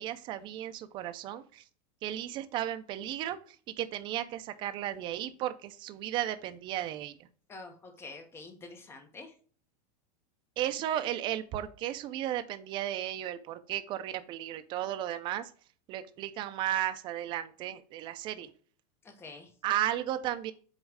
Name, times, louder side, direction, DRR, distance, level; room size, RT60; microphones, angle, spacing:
voice 1, 0.0-1.6 2.0-3.4 3.7-7.1 10.6-15.5 15.9-18.5 19.6-20.5, right 12 dB, 25° right, 10 dB, 0.5 m, -34 dB
voice 2, 7.5-9.3 19.0-19.5, left 3 dB, 10° left, 5 dB, 1.0 m, -47 dB
8.1 x 3.1 x 4.8 m, 0.43 s
supercardioid pair, 170°, 21 cm